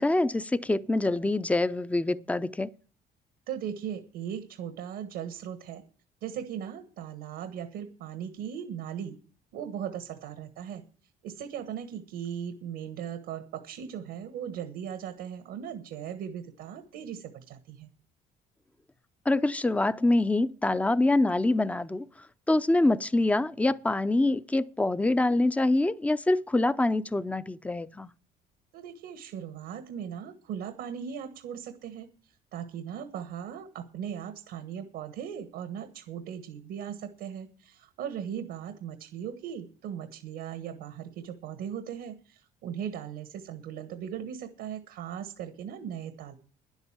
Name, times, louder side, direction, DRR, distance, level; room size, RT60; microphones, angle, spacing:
voice 1, 0.0-2.7 19.3-22.1 22.5-28.1, left 2 dB, 10° left, 0.5 m, -25 dB
voice 2, 3.5-5.8 6.2-9.2 9.5-10.8 11.2-17.9 28.7-32.1 32.5-46.4, right 8 dB, 85° right, 1.4 m, -38 dB
10.5 x 8.1 x 8.8 m
cardioid pair, 110°, 17 cm